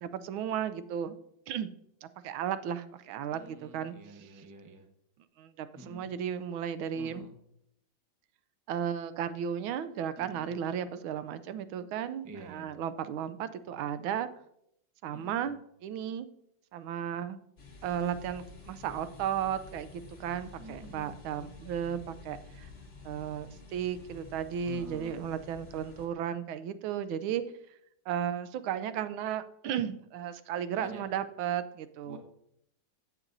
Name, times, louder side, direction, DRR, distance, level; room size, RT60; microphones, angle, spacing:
voice 1, 0.0-1.2 1.5-1.7 2.0-3.9 5.4-7.2 8.7-14.3 15.0-16.3 16.7-17.4 17.8-22.7 23.0-27.4 28.1-32.2, right 9 dB, 85° right, 12 dB, 1.4 m, -34 dB
voice 2, 3.3-4.9 5.8-6.1 6.9-7.3 10.1-10.5 12.2-12.8 15.1-15.5 20.6-21.1 24.6-25.2 30.8-31.0 32.0-32.2, right 2 dB, 20° right, 3 dB, 0.4 m, -48 dB
sound 1, 17.6-26.1, left 4 dB, 35° left, 1.2 m, -50 dB
16.0 x 6.0 x 2.6 m, 0.75 s
omnidirectional pair, 2.2 m